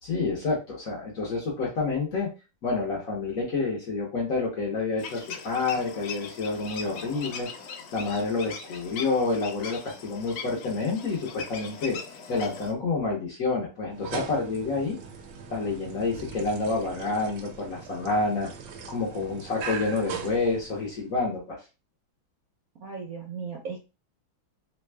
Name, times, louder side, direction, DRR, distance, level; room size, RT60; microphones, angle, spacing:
voice 1, 0.0-2.3 2.6-7.5 7.9-12.0 12.3-15.0 15.5-18.5 18.9-21.6, left 3 dB, 55° left, -3 dB, 1.0 m, -28 dB
sound 1, 5.0-12.7, left 6 dB, 85° left, 1.4 m, -40 dB
sound 2, 13.9-21.1, right 6 dB, 85° right, 1.4 m, -40 dB
voice 2, 22.8-23.8, right 5 dB, 65° right, -1 dB, 0.9 m, -36 dB
3.3 x 2.2 x 3.2 m, 0.30 s
omnidirectional pair, 2.2 m